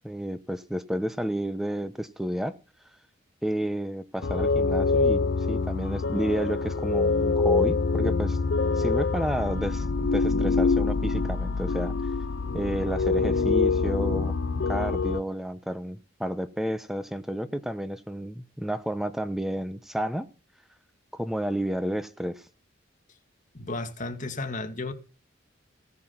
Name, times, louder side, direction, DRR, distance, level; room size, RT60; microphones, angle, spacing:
voice 1, 0.0-2.5 3.4-5.2 5.5-8.4 8.8-11.9 12.5-14.3 14.7-20.3 21.1-22.4, equal, ahead, 1.0 m, -31 dB
sound 1, 4.2-15.2, left 4 dB, 65° left, 0.6 m, -25 dB
voice 2, 23.5-24.9, left 2 dB, 40° left, 2.3 m, -33 dB
17.0 x 9.4 x 5.8 m
head